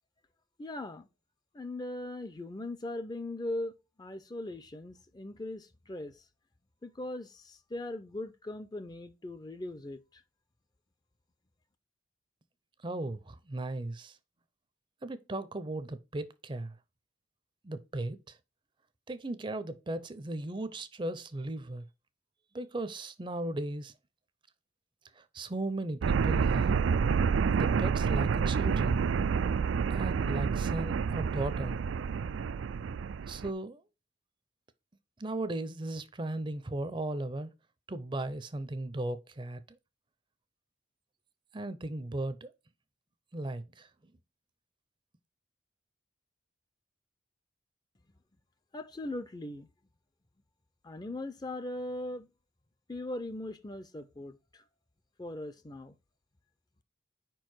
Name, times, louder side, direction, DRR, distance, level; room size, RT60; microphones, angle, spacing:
voice 1, 0.6-1.1 1.5-3.7 4.0-6.2 6.8-10.0 48.7-49.7 50.8-52.3 52.9-54.6 55.2-55.9, left 1 dB, 20° left, 0.5 m, -39 dB
voice 2, 12.8-14.2 15.0-16.8 17.6-18.4 19.1-21.8 22.5-23.9 25.1-26.8 27.6-29.0 29.9-31.8 33.3-33.8 35.2-37.5 37.9-39.8 41.5-42.5 43.3-44.1, right 2 dB, 25° right, 0.5 m, -36 dB
sound 1, 26.0-33.5, right 6 dB, 85° right, 0.4 m, -28 dB
5.1 x 4.6 x 6.1 m
head